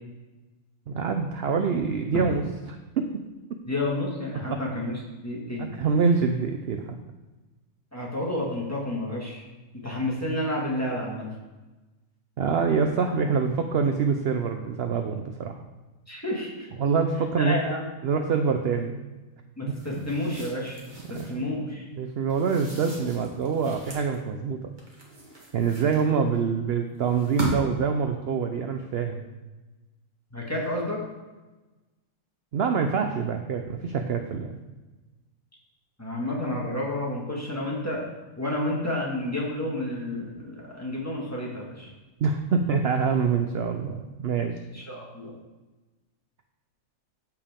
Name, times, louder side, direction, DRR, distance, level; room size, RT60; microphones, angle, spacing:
voice 1, 0.9-3.1 4.3-4.6 5.6-7.0 12.4-15.6 16.8-17.6 18.0-19.0 21.1-21.5 21.9-24.6 25.5-29.3 32.5-34.5 42.2-44.6, right 5 dB, 60° right, 5 dB, 0.7 m, -25 dB
voice 2, 3.7-4.9 5.2-5.7 7.9-9.4 9.8-11.3 16.1-16.7 17.4-17.8 19.6-20.8 21.3-21.9 30.3-31.0 36.0-38.0 38.4-41.9 44.7-45.3, left 1 dB, 10° left, -4 dB, 1.7 m, -30 dB
sound 1, 19.7-21.4 22.3-24.1 24.8-26.4 27.1-27.9, right 2 dB, 35° right, 1.7 m, -37 dB
14.0 x 4.7 x 3.6 m, 1.2 s
omnidirectional pair, 1.4 m